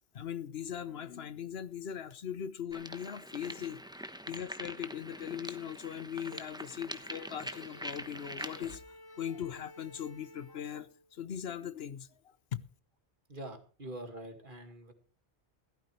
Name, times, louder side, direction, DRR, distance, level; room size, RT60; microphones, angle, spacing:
voice 1, 0.1-3.8 4.3-12.6, left 9 dB, 70° left, 1.0 m, -40 dB
sound 1, 2.7-8.8, equal, 5° right, 0.9 m, -44 dB
Bowed string instrument, 6.8-11.2, left 1 dB, 25° left, 0.7 m, -55 dB
voice 2, 13.3-14.9, right 1 dB, 50° right, 2.3 m, -44 dB
15.5 x 13.0 x 3.2 m
omnidirectional pair, 1.1 m